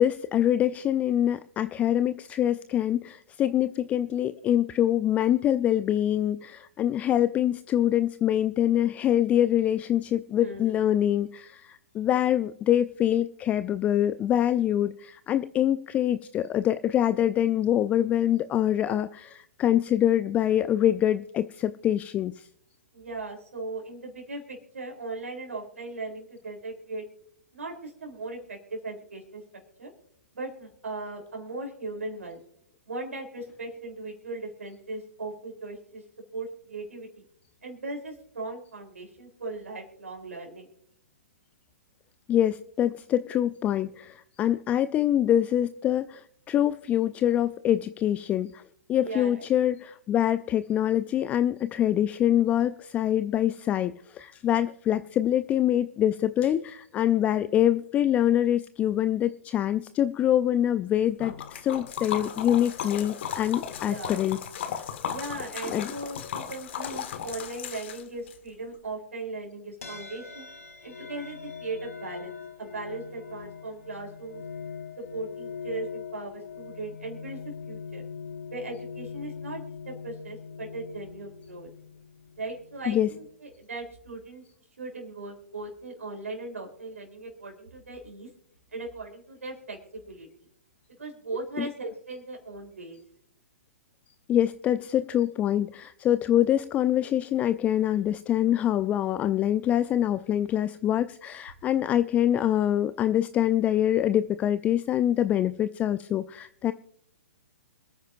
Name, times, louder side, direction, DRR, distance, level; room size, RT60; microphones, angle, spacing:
voice 1, 0.0-22.5 42.3-48.6 48.9-64.4 65.7-65.9 82.9-83.1 91.6-91.7 94.3-106.7, left 11 dB, 20° left, 14 dB, 0.4 m, -25 dB
voice 2, 10.4-10.8 18.8-19.1 22.9-27.0 27.5-29.4 29.8-29.9 30.3-32.4 32.9-36.0 36.3-37.2 37.6-40.7 49.0-49.5 63.9-64.2 65.1-70.5 70.8-74.4 75.0-77.4 77.7-78.0 78.5-81.7 82.4-84.4 84.8-88.3 88.7-90.3 91.0-93.0, right 2 dB, 75° right, 1 dB, 3.5 m, -38 dB
Liquid, 61.2-68.4, left 8 dB, 55° left, 1.7 m, -36 dB
sound 1, 69.8-83.3, left 6 dB, 75° left, 1.4 m, -42 dB
26.5 x 9.5 x 2.5 m, 0.72 s
figure-of-eight pair, 120°, 8 cm